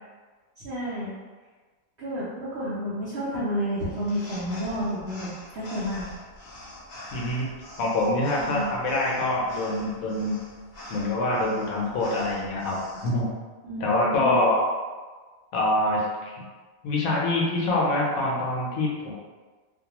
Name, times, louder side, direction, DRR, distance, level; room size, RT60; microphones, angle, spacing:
voice 1, 0.6-1.1 2.0-6.1 8.4-8.7 13.6-14.4, equal, 60° right, -11 dB, 0.8 m, -30 dB
sound 1, 3.8-13.1, left 1 dB, 50° left, 0.5 m, -44 dB
voice 2, 7.1-7.5 7.8-10.4 10.9-12.8 13.0-13.3 13.8-14.6 15.5-16.4 16.8-19.1, left 2 dB, 75° left, -3 dB, 1.0 m, -25 dB
2.5 x 2.2 x 2.8 m, 1.4 s
omnidirectional pair, 1.6 m